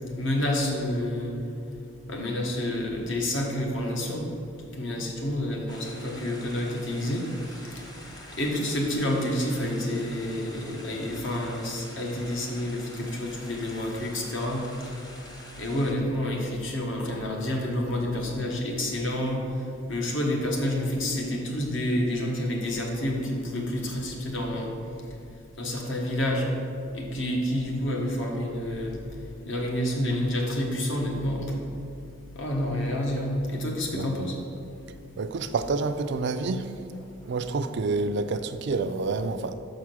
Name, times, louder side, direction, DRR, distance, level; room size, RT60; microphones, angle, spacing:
voice 1, 0.2-1.4 2.1-4.3 4.8-7.2 8.4-14.7 15.6-19.5 19.9-24.7 25.6-26.5 26.9-29.0 29.4-31.6 32.3-34.4, left 1 dB, 60° left, 1.2 m, -29 dB
sound 1, 5.7-15.9, left 1 dB, 20° left, 0.9 m, -46 dB
voice 2, 35.2-36.7 37.3-39.5, right 3 dB, 55° right, 0.4 m, -28 dB
6.4 x 4.9 x 6.1 m
head